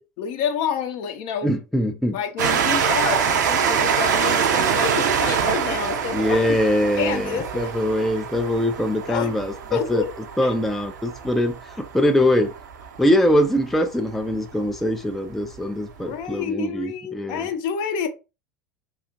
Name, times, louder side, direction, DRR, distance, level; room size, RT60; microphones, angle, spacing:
voice 1, 0.2-1.5 2.1-6.6 7.0-7.7 9.1-9.3 9.7-10.1 10.4-10.5 16.0-18.1, left 7 dB, 50° left, 0.6 m, -28 dB
voice 2, 1.4-2.2 6.1-9.5 9.9-10.0 10.4-12.5 13.0-17.5, equal, ahead, 0.3 m, -22 dB
Train, 2.4-13.6 14.3-14.4 14.6-14.7, right 7 dB, 70° right, 0.5 m, -25 dB
2.8 x 2.4 x 2.4 m
figure-of-eight pair, 80°, 10 cm